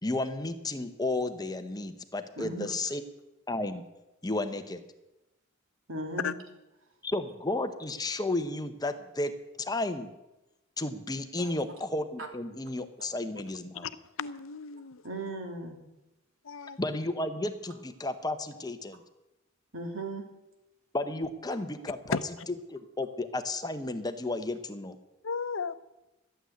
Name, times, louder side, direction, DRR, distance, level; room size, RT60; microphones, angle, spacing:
voice 1, 0.0-3.0 3.5-3.8 4.2-4.8 7.0-10.1 10.8-13.9 16.8-19.0 20.9-22.2 22.7-25.0, left 2 dB, 20° left, 0.9 m, -33 dB
voice 2, 2.4-2.7 5.9-6.3 11.4-11.5 15.0-15.8 19.7-20.2, right 2 dB, 70° right, 2.9 m, -37 dB
voice 3, 14.2-15.0 16.4-16.8 22.1-22.5 25.2-25.8, left 5 dB, 75° left, 0.7 m, -34 dB
13.0 x 9.0 x 9.2 m
head